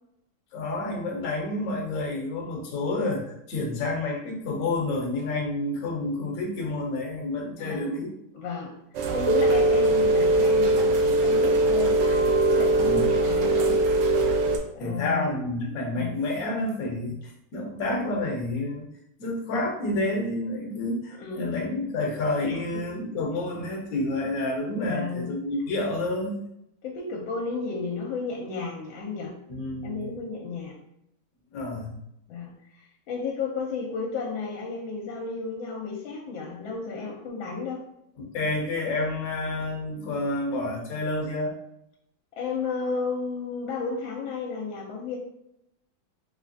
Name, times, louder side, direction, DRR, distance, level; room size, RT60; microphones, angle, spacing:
voice 1, 0.5-8.1 12.8-13.0 14.8-18.9 19.2-26.4 29.5-30.1 31.5-32.0 38.2-41.5, left 2 dB, 55° left, 0 dB, 1.1 m, -29 dB
voice 2, 7.6-8.0 8.3-8.8 9.1-12.0 12.5-13.8 14.7-15.4 15.9-16.1 21.2-21.6 22.4-22.8 24.8-25.3 26.8-29.3 29.8-30.8 31.5-31.7 32.3-37.9 42.4-45.2, left 4 dB, 80° left, 1 dB, 1.4 m, -33 dB
Rain, 8.9-14.6, right 2 dB, 75° right, 1.1 m, -21 dB
3.6 x 3.2 x 2.6 m, 0.80 s
omnidirectional pair, 2.2 m